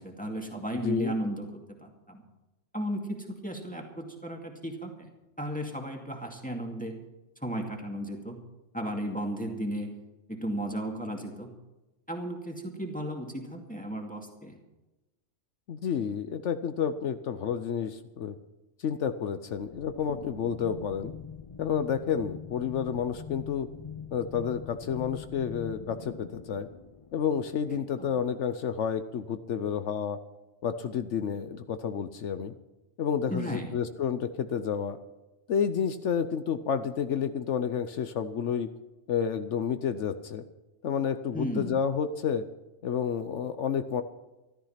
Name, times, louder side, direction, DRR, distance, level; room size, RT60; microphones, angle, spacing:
voice 1, 0.0-1.5 1.8-2.2 2.7-4.9 5.4-6.9 7.4-8.4 8.7-9.9 10.3-11.5 12.1-14.6 28.0-28.2 33.3-33.8 41.3-41.8, right 1 dB, 5° left, 1 dB, 2.2 m, -34 dB
voice 2, 0.7-1.2 15.7-18.4 18.8-21.1 21.6-23.7 24.1-26.7 27.1-30.2 30.6-32.5 33.0-35.0 35.5-38.7 39.1-40.4 40.8-42.4 42.8-44.0, left 7 dB, 70° left, 10 dB, 1.1 m, -30 dB
sound 1, 19.5-27.8, left 6 dB, 45° left, 0.4 m, -44 dB
14.0 x 13.5 x 5.8 m, 1.0 s
omnidirectional pair, 1.3 m